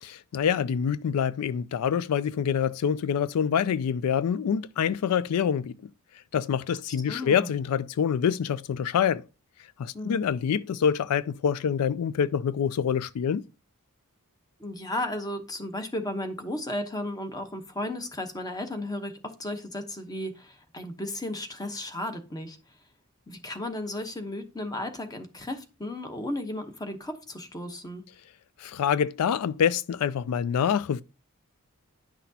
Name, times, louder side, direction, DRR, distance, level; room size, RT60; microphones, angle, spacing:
voice 1, 0.0-5.8 6.3-9.2 9.8-13.4 28.6-31.0, left 7 dB, 85° left, 0.4 m, -26 dB
voice 2, 7.1-7.5 9.9-10.3 14.6-22.6 23.3-28.0, left 1 dB, 15° left, 0.9 m, -34 dB
10.0 x 5.9 x 2.8 m
head